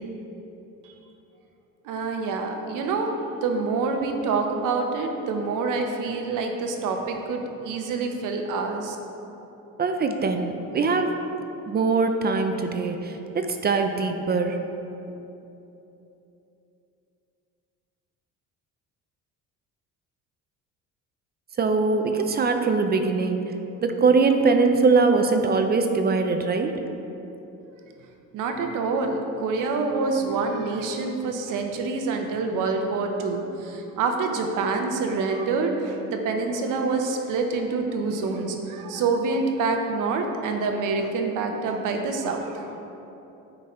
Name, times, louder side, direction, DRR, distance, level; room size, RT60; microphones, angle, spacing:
voice 1, 1.8-9.0 28.3-42.7, right 4 dB, 75° right, 4 dB, 0.9 m, -26 dB
voice 2, 9.8-11.2 11.7-14.6 21.6-23.4 23.8-26.8, right 4 dB, 30° right, 6 dB, 0.5 m, -22 dB
9.6 x 4.0 x 4.3 m, 3.0 s
cardioid pair, 110°, 32 cm